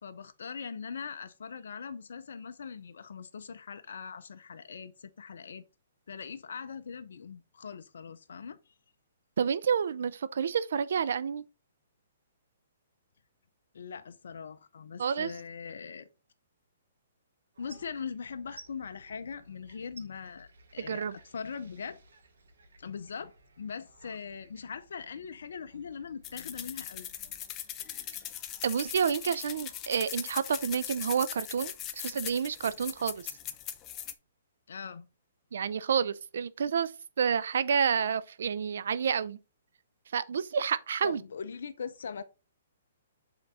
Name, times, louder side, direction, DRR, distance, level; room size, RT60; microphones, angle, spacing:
voice 1, 0.0-5.6 6.1-8.6 13.7-16.1 17.6-22.0 22.8-27.1 34.7-35.1 41.0-42.2, left 6 dB, 75° left, 0.5 m, -41 dB
voice 2, 9.4-11.4 15.0-15.3 20.8-21.2 28.6-33.3 35.5-36.9 37.2-39.4 40.1-41.2, right 7 dB, 70° right, 0.6 m, -29 dB
sound 1, 17.5-28.4, right 3 dB, 85° right, 2.2 m, -58 dB
sound 2, 26.2-34.1, left 11 dB, 25° left, 0.6 m, -40 dB
7.0 x 3.8 x 4.1 m
hypercardioid pair, 145°, 0 cm